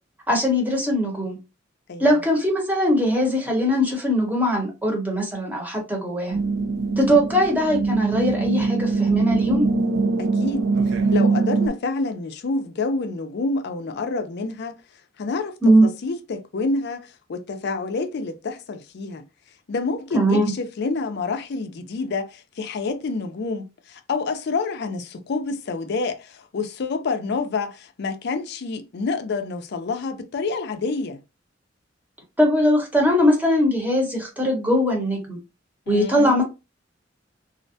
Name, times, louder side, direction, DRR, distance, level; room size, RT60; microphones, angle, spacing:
voice 1, 0.3-1.4 2.0-6.4 7.0-9.7 15.6-15.9 20.1-20.5 32.4-35.4 35.9-36.4, equal, 10° right, 0.9 m, -20 dB
sound 1, 6.3-11.7, right 3 dB, 80° right, 0.5 m, -22 dB
voice 2, 10.2-10.7 11.1-14.8 15.2-19.2 19.7-31.2 35.9-36.4, left 3 dB, 60° left, 0.4 m, -28 dB
2.4 x 2.1 x 2.6 m
head